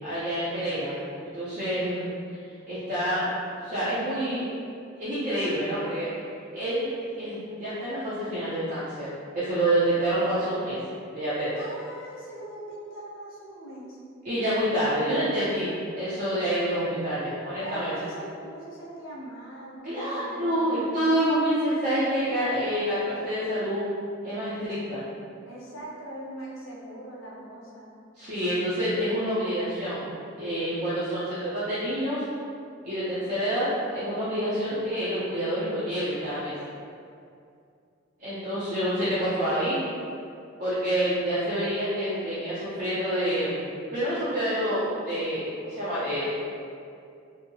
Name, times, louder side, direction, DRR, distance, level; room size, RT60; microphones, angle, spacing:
voice 1, 0.0-0.9 1.3-2.1 2.7-3.3 3.6-4.5 5.0-6.1 6.5-9.1 9.3-10.8 11.1-11.6 14.2-17.9 19.8-23.8 24.2-25.0 28.2-30.0 30.4-32.2 32.8-36.5 38.2-39.8 40.6-46.4, equal, 40° right, -12 dB, 0.5 m, -27 dB
voice 2, 11.6-14.0 17.6-20.9 25.4-28.0, right 1 dB, 85° left, -5 dB, 0.6 m, -41 dB
2.6 x 2.0 x 2.6 m, 2.4 s
head